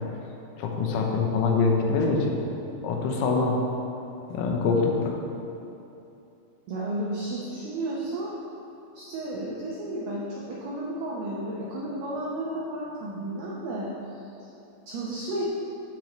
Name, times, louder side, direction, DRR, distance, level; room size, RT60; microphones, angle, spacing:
voice 1, 0.6-2.4 2.8-3.6 4.3-5.2, left 4 dB, 85° left, 0 dB, 3.7 m, -24 dB
voice 2, 6.7-8.3 8.9-14.5 14.9-15.4, right 1 dB, 85° right, -5 dB, 2.2 m, -33 dB
15.5 x 6.9 x 3.1 m, 2.8 s
omnidirectional pair, 6.0 m